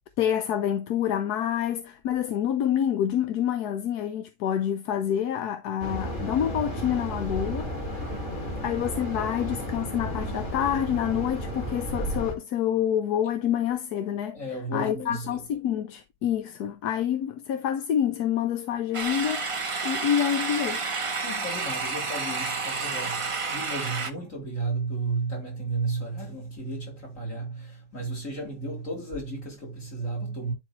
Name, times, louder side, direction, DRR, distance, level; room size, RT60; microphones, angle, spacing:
voice 1, 0.2-7.7 8.6-14.4 14.7-19.5 19.8-20.8, left 10 dB, 65° left, 1.1 m, -27 dB
sound 1, 5.8-12.3, equal, 25° left, 2.3 m, -33 dB
voice 2, 14.3-15.5 21.2-30.5, right 3 dB, 45° left, 3.9 m, -33 dB
sound 2, 18.9-24.1, right 4 dB, 55° right, 0.3 m, -30 dB
10.5 x 4.7 x 3.1 m
omnidirectional pair, 2.0 m